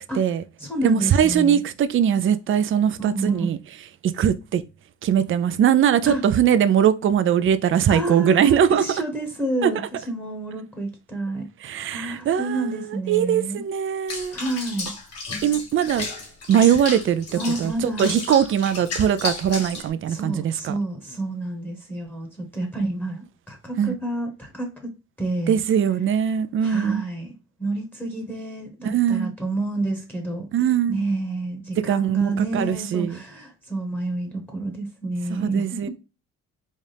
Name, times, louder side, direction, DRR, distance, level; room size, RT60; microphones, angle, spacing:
voice 1, 0.0-0.4 0.8-3.6 4.0-4.6 5.0-8.8 9.6-9.7 11.6-14.4 15.4-16.1 16.5-20.7 23.8-24.0 25.5-27.0 28.8-29.3 30.5-31.1 31.8-33.2 35.3-35.9, right 9 dB, 45° right, 0.4 m, -21 dB
voice 2, 0.6-1.6 3.0-3.5 6.1-6.2 7.9-9.8 10.1-11.5 11.9-13.6 14.3-14.9 17.3-18.1 20.1-24.9 25.2-25.6 26.6-27.3 27.6-30.4 30.9-35.9, right 2 dB, 5° left, 1.1 m, -29 dB
Water / Bathtub (filling or washing), 14.1-19.9, left 3 dB, 55° left, 1.6 m, -33 dB
4.1 x 2.4 x 3.3 m
cardioid pair, 90°, 30 cm